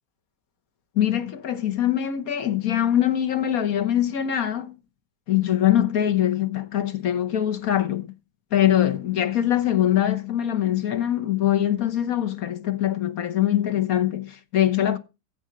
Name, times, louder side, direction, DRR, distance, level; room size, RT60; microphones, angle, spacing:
voice 1, 0.9-4.8 5.3-8.1 8.5-15.0, left 11 dB, 60° left, 1.6 m, -23 dB
15.0 x 8.0 x 4.6 m
omnidirectional pair, 1.7 m